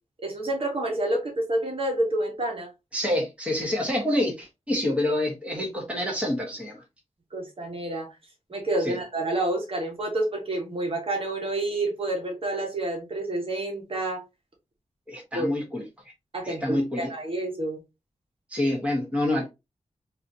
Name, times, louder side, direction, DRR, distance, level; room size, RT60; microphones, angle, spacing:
voice 1, 0.2-2.7 7.3-8.1 8.5-14.2 15.3-15.5 16.3-17.8, right 1 dB, 50° right, 1.6 m, -28 dB
voice 2, 2.9-6.8 8.8-9.0 15.1-15.8 16.4-17.1 18.5-19.5, left 1 dB, 10° right, 1.3 m, -27 dB
4.0 x 2.8 x 2.8 m
wide cardioid pair, 115°, 12 cm